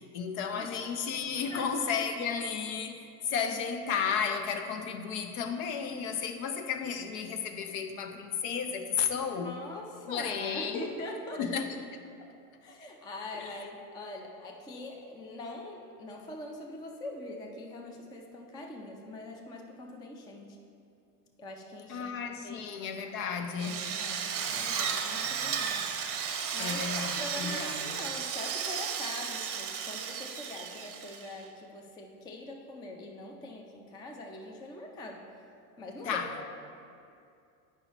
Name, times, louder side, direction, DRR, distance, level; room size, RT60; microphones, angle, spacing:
voice 1, 0.0-9.6 10.0-10.9 11.4-11.8 13.3-13.6 21.9-23.9 26.6-27.9 36.0-36.3, left 6 dB, 60° left, 7 dB, 0.8 m, -33 dB
voice 2, 9.4-11.4 12.2-12.3 12.6-20.6 21.4-22.1 22.4-25.9 26.2-26.8 27.1-35.2 35.8-36.5, left 2 dB, 10° left, 1 dB, 0.3 m, -43 dB
Drill, 23.6-31.4, right 7 dB, 30° right, 0.7 m, -34 dB
8.6 x 5.6 x 3.0 m, 2.5 s
supercardioid pair, 115°, 47 cm